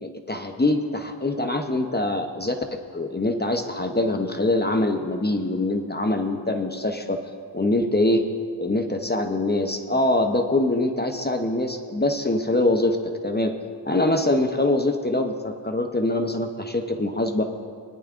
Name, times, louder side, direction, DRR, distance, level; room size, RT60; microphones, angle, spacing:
voice 1, 0.0-2.6 2.9-7.2 7.5-8.2 8.6-13.0 13.2-13.5 13.9-17.4, left 2 dB, 25° left, 5 dB, 0.8 m, -24 dB
21.0 x 10.0 x 2.5 m, 2.2 s
cardioid pair, 55°, 43 cm